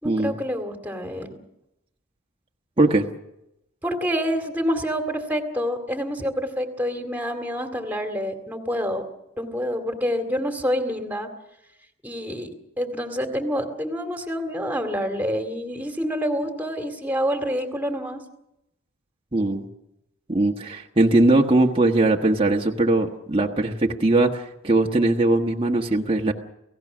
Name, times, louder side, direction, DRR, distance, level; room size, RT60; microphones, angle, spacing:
voice 1, 0.0-1.4 3.8-9.0 9.4-11.3 12.0-12.5 12.8-18.2, equal, 10° right, 6 dB, 2.2 m, -27 dB
voice 2, 2.8-3.1 19.3-19.7 20.3-26.3, right 2 dB, 25° right, 0 dB, 1.3 m, -20 dB
29.5 x 17.0 x 6.2 m, 0.87 s
head